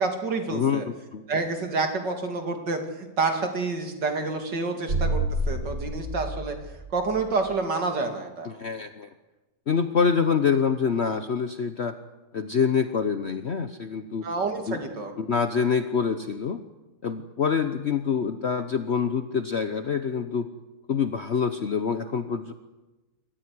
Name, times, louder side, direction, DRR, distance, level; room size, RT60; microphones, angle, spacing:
voice 1, 0.0-0.8 1.3-6.5 6.9-8.5 14.2-15.1, right 3 dB, 90° right, 5 dB, 3.2 m, -28 dB
voice 2, 0.5-1.2 8.4-9.1 9.7-12.0 12.3-14.3 14.7-14.8 15.2-16.6 17.0-20.5 20.9-22.5, left 6 dB, 45° left, 9 dB, 1.0 m, -26 dB
sound 1, 4.9-7.3, right 1 dB, 65° right, 5.1 m, -29 dB
26.5 x 14.5 x 9.7 m, 1.1 s
omnidirectional pair, 1.8 m